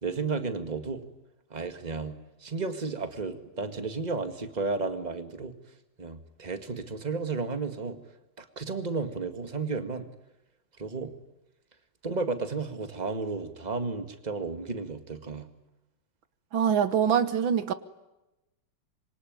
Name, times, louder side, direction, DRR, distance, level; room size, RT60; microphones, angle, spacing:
voice 1, 0.0-1.0 1.5-5.5 6.0-8.0 8.4-10.1 10.8-11.1 12.0-15.5, right 4 dB, 20° right, 2.0 m, -33 dB
voice 2, 16.5-17.7, right 8 dB, 80° right, 1.9 m, -24 dB
26.0 x 24.0 x 9.5 m
omnidirectional pair, 2.1 m